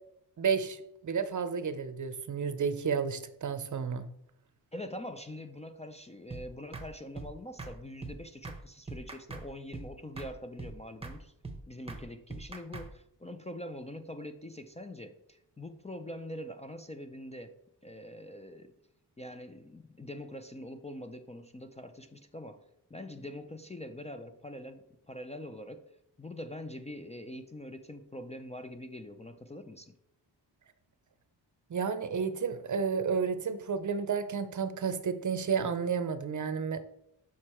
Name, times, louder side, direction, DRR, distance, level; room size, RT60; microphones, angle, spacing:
voice 1, 0.4-4.1 31.7-36.9, right 6 dB, 45° right, 11 dB, 0.6 m, -31 dB
voice 2, 4.7-11.3 11.7-17.5 17.8-18.7 19.2-25.8 26.2-29.9, left 1 dB, 15° left, 7 dB, 0.4 m, -44 dB
sound 1, 6.3-6.4 6.7-6.9 7.2-7.3 7.6-7.7 8.0-8.2 8.4-8.6 8.9-9.5 9.7-9.9 10.2-10.3 10.6-10.7 11.0-11.2 11.4-11.6 11.9-12.0 12.3-12.9, right 3 dB, 15° right, 0.8 m, -41 dB
6.4 x 5.9 x 4.3 m, 0.78 s
wide cardioid pair, 140°, 41 cm